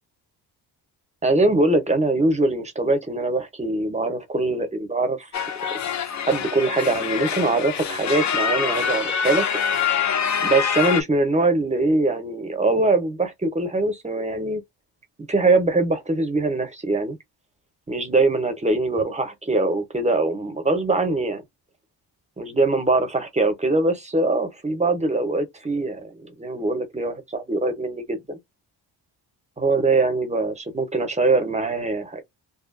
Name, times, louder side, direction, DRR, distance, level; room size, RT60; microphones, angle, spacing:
voice 1, 1.2-5.3 5.7-5.8 6.3-9.5 10.4-14.6 15.3-17.2 17.9-21.4 22.4-28.4 29.6-32.2, right 2 dB, 15° right, 0.6 m, -22 dB
sound 1, 5.3-11.0, left 7 dB, 45° left, 0.5 m, -25 dB
2.7 x 2.2 x 2.4 m
cardioid pair, 125°, 41 cm